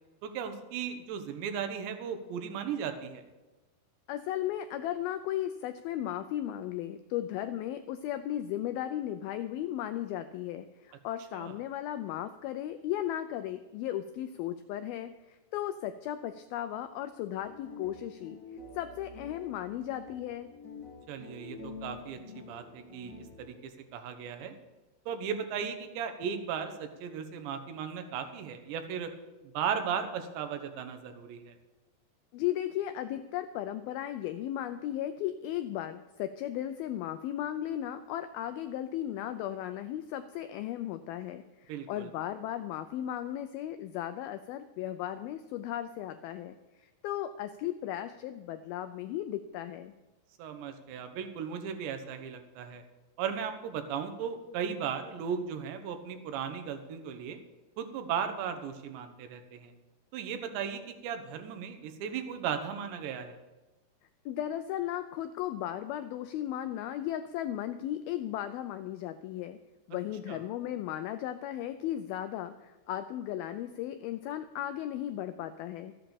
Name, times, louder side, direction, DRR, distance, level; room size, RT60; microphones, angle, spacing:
voice 1, 0.2-3.3 11.3-11.6 21.1-24.5 25.1-29.1 29.4-31.6 41.7-42.1 50.4-52.8 53.2-57.4 57.8-59.7 60.1-63.4 70.3-70.4, right 7 dB, 90° right, 7 dB, 3.4 m, -36 dB
voice 2, 4.1-18.4 18.8-20.5 32.3-49.9 64.3-69.6 69.9-75.9, left 12 dB, 85° left, 10 dB, 2.1 m, -36 dB
sound 1, 17.3-23.6, left 4 dB, 40° left, 1.1 m, -48 dB
13.0 x 8.6 x 7.1 m, 1.1 s
omnidirectional pair, 4.9 m